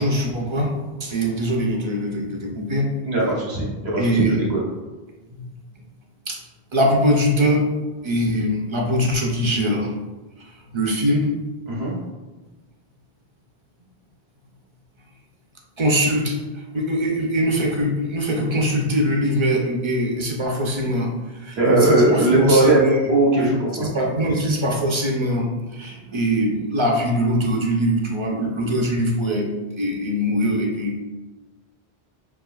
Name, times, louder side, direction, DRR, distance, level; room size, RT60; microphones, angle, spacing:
voice 1, 0.0-2.9 4.0-4.4 5.3-5.4 6.3-6.4 6.7-7.7 8.0-9.9 10.4-11.4 15.8-23.0 23.4-31.0, equal, 35° right, 0 dB, 0.5 m, -22 dB
voice 2, 3.0-4.6 11.7-11.9 21.6-22.8 23.1-23.9, right 2 dB, 80° right, -5 dB, 1.3 m, -19 dB
6.2 x 2.6 x 2.3 m, 1.2 s
omnidirectional pair, 1.1 m